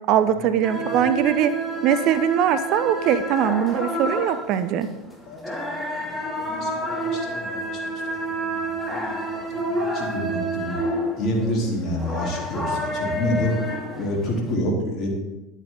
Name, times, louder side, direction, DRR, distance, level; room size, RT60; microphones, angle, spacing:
voice 1, 0.1-1.5 1.8-4.9, right 9 dB, 55° right, 12 dB, 0.6 m, -21 dB
sound 1, 0.6-14.6, right 1 dB, 5° left, 2.6 m, -29 dB
voice 2, 0.7-1.0 5.3-8.0 8.3-10.8 11.2-13.5 13.9-15.1, equal, 45° left, -1 dB, 3.4 m, -29 dB
11.5 x 9.1 x 3.8 m, 1.0 s
hypercardioid pair, 80°, 0 cm